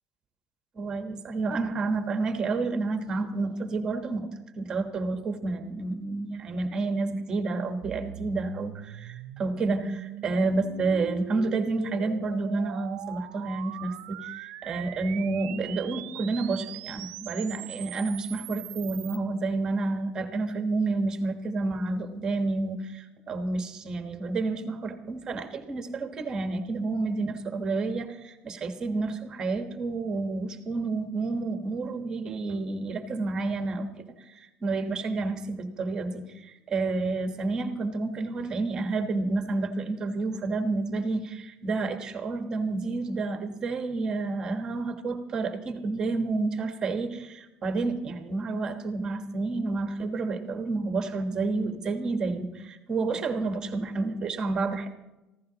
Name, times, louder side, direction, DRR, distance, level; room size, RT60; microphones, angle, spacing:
voice 1, 0.8-4.3 4.6-33.9 34.3-54.9, right 3 dB, 25° right, 6 dB, 1.2 m, -30 dB
sound 1, 7.8-19.2, right 15 dB, 75° right, 0.5 m, -41 dB
24.5 x 15.5 x 2.9 m, 1.0 s
cardioid pair, 175°, 3 cm